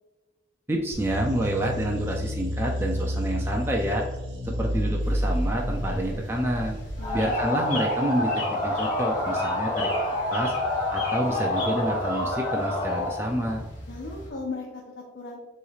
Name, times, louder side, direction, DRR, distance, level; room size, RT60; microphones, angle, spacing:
voice 1, 0.7-4.0 4.4-6.8 7.1-10.5 10.9-13.7, right 1 dB, 15° right, 0 dB, 0.4 m, -28 dB
sound 1, 0.9-7.4, equal, 90° right, 1.1 m, -30 dB
sound 2, 5.0-14.3, left 2 dB, 40° left, 1.3 m, -40 dB
sound 3, 7.0-13.2, left 1 dB, 25° left, 1.1 m, -27 dB
voice 2, 13.9-15.4, left 3 dB, 85° left, -3 dB, 0.8 m, -37 dB
6.8 x 3.1 x 2.4 m, 1.2 s
head